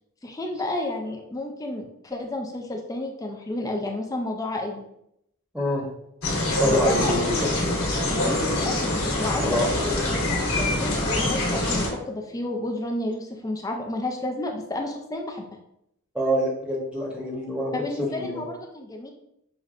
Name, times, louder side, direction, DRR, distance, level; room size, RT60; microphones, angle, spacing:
voice 1, 0.2-4.8 6.6-7.5 8.1-15.5 17.7-19.1, left 1 dB, 15° left, 2 dB, 0.3 m, -31 dB
voice 2, 5.5-5.8 6.6-7.6 9.4-10.1 16.1-17.7 18.1-18.4, equal, 5° right, -3 dB, 0.8 m, -26 dB
sound 1, 6.2-11.9, left 1 dB, 90° left, 1.2 m, -25 dB
6.3 x 2.1 x 2.4 m, 0.79 s
head